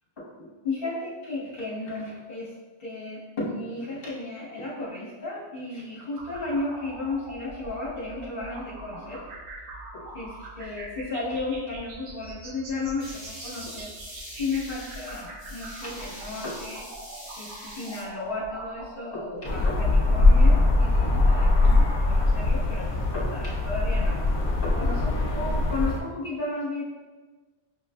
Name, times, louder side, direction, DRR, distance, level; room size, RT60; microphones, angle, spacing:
voice 1, 0.2-9.3 9.9-13.9 14.3-16.9 17.4-24.2 24.6-26.8, left 2 dB, 50° left, -6 dB, 1.3 m, -34 dB
sound 1, 6.1-21.1, right 2 dB, 55° right, 0.7 m, -43 dB
sound 2, 13.0-18.0, equal, 35° right, 1.0 m, -43 dB
sound 3, 19.4-26.0, left 2 dB, 75° left, 0.9 m, -21 dB
6.0 x 2.4 x 2.2 m, 1.3 s
omnidirectional pair, 1.2 m